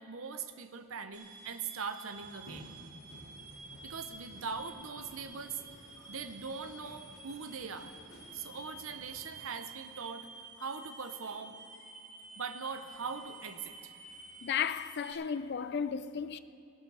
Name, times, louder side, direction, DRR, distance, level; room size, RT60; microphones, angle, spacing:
voice 1, 0.0-2.7 3.8-5.6 6.0-7.9 8.3-10.3 10.6-11.6 12.4-13.9, right 5 dB, 70° right, 0.8 m, -41 dB
sound 1, 1.1-15.1, right 3 dB, 35° right, 1.6 m, -51 dB
sound 2, 2.1-9.2, equal, 75° left, 3.8 m, -54 dB
voice 2, 14.4-16.4, left 7 dB, 50° left, 0.4 m, -34 dB
18.0 x 12.0 x 4.8 m
head